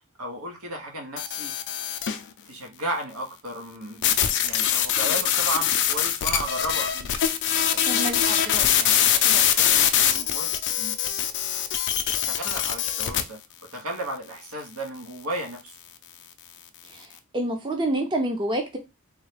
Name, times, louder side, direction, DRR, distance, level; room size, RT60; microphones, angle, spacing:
voice 1, 0.2-1.5 2.1-7.1 7.7-10.5 10.8-11.0 11.5-11.6 12.2-13.4 13.7-15.7, right 1 dB, 80° right, 1.1 m, -34 dB
sound 1, 1.2-2.2 4.0-13.2, left 9 dB, 55° left, 0.4 m, -23 dB
voice 2, 7.9-8.2 16.9-17.1 17.3-18.8, right 1 dB, 20° right, 0.6 m, -27 dB
3.6 x 2.2 x 3.2 m
head